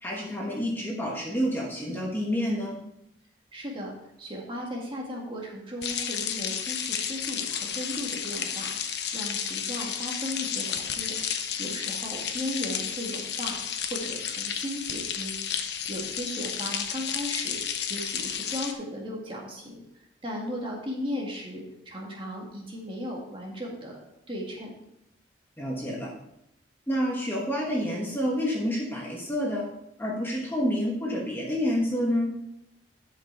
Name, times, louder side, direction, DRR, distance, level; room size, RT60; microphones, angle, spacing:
voice 1, 0.0-2.8 25.6-26.1 26.9-29.7 30.0-32.3, equal, 10° left, -2 dB, 1.3 m, -28 dB
voice 2, 3.5-3.9 4.2-11.2 11.6-13.6 13.9-15.4 15.9-17.6 17.9-19.8 20.2-24.0 24.3-24.7, equal, 25° right, -2 dB, 2.0 m, -36 dB
sound 1, 5.8-18.7, left 8 dB, 60° left, 0.9 m, -32 dB
12.0 x 5.5 x 4.6 m, 0.84 s
head